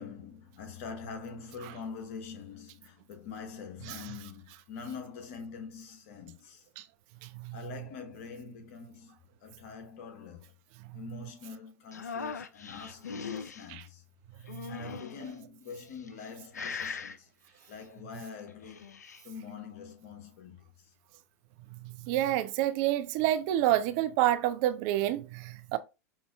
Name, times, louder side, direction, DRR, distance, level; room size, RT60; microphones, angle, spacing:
voice 1, 0.0-6.6 7.5-9.2 9.4-10.5 10.9-14.0 14.4-17.3 17.7-18.8 19.2-20.6, left 5 dB, 55° left, 1.0 m, -44 dB
sound 1, 11.9-13.7 14.5-15.3 16.0-16.3 16.5-17.2 18.5-19.2, left 5 dB, 80° left, 0.4 m, -39 dB
voice 2, 22.1-25.8, right 13 dB, 50° right, 0.4 m, -28 dB
5.4 x 2.6 x 2.3 m
figure-of-eight pair, 90°, 9 cm